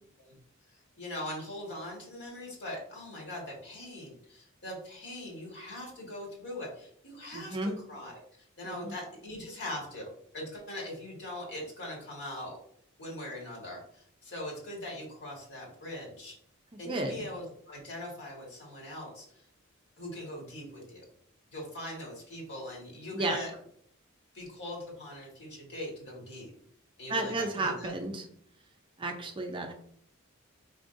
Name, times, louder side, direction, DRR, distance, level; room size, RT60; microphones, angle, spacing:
voice 1, 0.7-8.2 8.6-10.1 10.3-12.6 13.0-16.3 16.8-19.4 20.0-21.0 21.5-23.5 24.3-26.5 27.0-27.9, left 1 dB, 55° left, -2 dB, 1.7 m, -41 dB
voice 2, 7.3-7.8 8.6-8.9 16.7-17.2 23.1-23.4 27.1-28.3 29.0-29.7, right 2 dB, 25° right, 3 dB, 0.5 m, -33 dB
5.0 x 3.6 x 2.6 m, 0.65 s
head